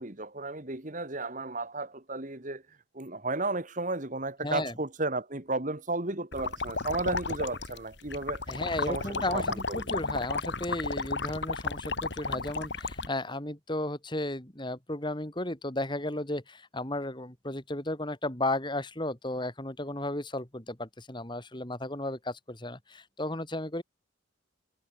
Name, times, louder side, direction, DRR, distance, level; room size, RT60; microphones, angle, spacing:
voice 1, 0.0-2.6 2.9-8.4 8.9-10.0, right 2 dB, 40° right, 1.8 m, -33 dB
voice 2, 4.4-4.7 8.5-23.8, left 1 dB, 20° left, 2.2 m, -34 dB
sound 1, 6.3-13.1, left 3 dB, 55° left, 2.7 m, -33 dB
head